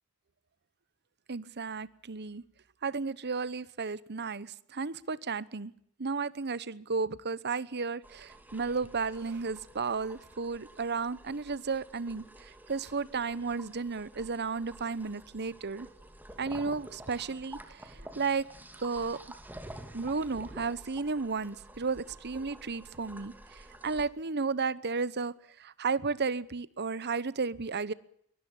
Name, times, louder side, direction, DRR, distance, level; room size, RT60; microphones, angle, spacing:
voice 1, 1.3-2.4 2.8-5.7 6.0-15.9 16.4-18.5 18.8-19.2 19.9-25.3 25.6-27.9, right 4 dB, 50° right, 18 dB, 1.0 m, -33 dB
sound 1, 8.0-24.0, right 1 dB, 10° right, 2.7 m, -50 dB
23.5 x 19.0 x 7.2 m, 0.68 s
head